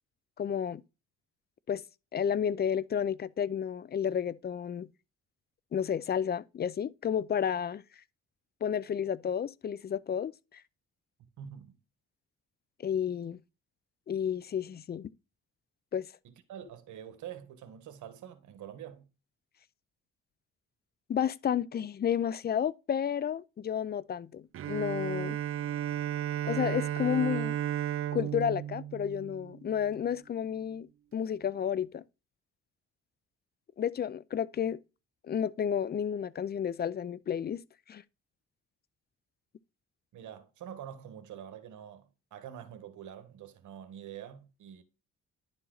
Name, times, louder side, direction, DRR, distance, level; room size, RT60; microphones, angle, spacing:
voice 1, 0.4-0.8 1.7-1.8 2.1-4.9 5.7-7.8 8.6-10.6 12.8-13.4 14.1-15.1 15.9-16.1 21.1-25.4 26.4-27.6 28.1-30.9 31.1-32.0 33.8-34.8 35.2-37.6 37.9-38.0, left 8 dB, 35° left, 0.4 m, -31 dB
voice 2, 11.4-11.8 16.2-19.1 40.1-44.8, right 9 dB, 75° right, 1.3 m, -46 dB
Bowed string instrument, 24.5-30.0, right 11 dB, 50° right, 0.4 m, -34 dB
10.5 x 4.1 x 3.9 m
cardioid pair, 90°, 30 cm